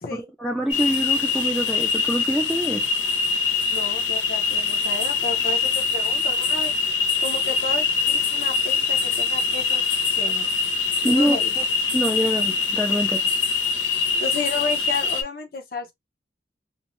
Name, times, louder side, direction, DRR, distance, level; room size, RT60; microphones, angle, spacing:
voice 1, 0.1-2.8 11.0-11.6 11.9-13.2, equal, ahead, 0.4 m, -25 dB
sound 1, 0.7-15.2, left 4 dB, 85° left, 0.5 m, -23 dB
voice 2, 3.7-6.7 7.2-10.5 11.0-11.5 14.1-15.9, left 4 dB, 55° left, 0.8 m, -32 dB
2.6 x 2.2 x 3.0 m
head